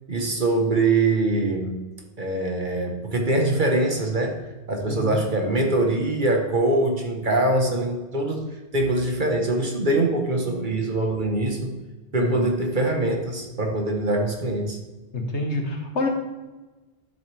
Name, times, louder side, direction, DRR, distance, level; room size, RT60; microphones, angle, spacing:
voice 1, 0.1-1.8 2.2-4.4 4.7-8.4 8.7-11.8 12.1-14.8, right 2 dB, 45° right, 2 dB, 1.6 m, -23 dB
voice 2, 4.9-5.2 7.5-7.8 12.2-12.5 15.1-16.1, left 2 dB, 80° left, 3 dB, 1.8 m, -27 dB
11.5 x 7.8 x 3.4 m, 1.2 s
omnidirectional pair, 1.1 m